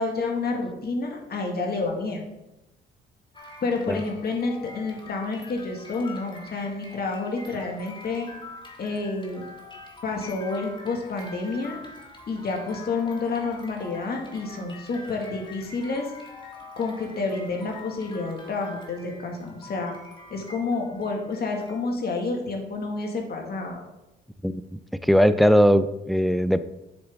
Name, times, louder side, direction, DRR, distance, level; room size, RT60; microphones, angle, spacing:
voice 1, 0.0-2.2 3.6-8.3 8.8-9.4 10.0-11.8 12.3-16.1 16.8-20.0 20.3-23.8, left 3 dB, 50° left, 2 dB, 1.9 m, -29 dB
sound 1, 3.3-21.8, left 3 dB, 25° left, 1.7 m, -45 dB
voice 2, 25.0-26.6, equal, ahead, 12 dB, 0.4 m, -19 dB
7.9 x 6.9 x 3.6 m, 0.95 s
cardioid pair, 90°, 20 cm